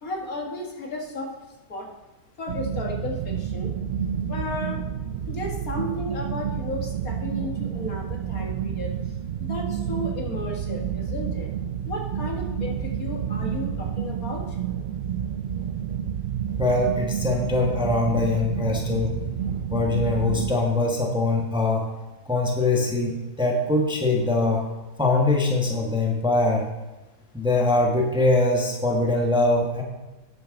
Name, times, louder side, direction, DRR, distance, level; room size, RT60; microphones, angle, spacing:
voice 1, 0.0-1.3 1.7-1.9 2.4-3.7 4.3-4.8 5.3-8.9 9.4-11.5 11.8-14.4, left 2 dB, 60° left, 0 dB, 2.1 m, -34 dB
sound 1, 2.5-20.5, right 8 dB, 70° right, 0.5 m, -29 dB
voice 2, 16.6-19.1 19.7-21.9 22.3-24.6 25.0-26.6 27.3-29.8, left 2 dB, 5° right, 0 dB, 1.4 m, -22 dB
12.5 x 9.0 x 3.8 m, 1.1 s
omnidirectional pair, 1.7 m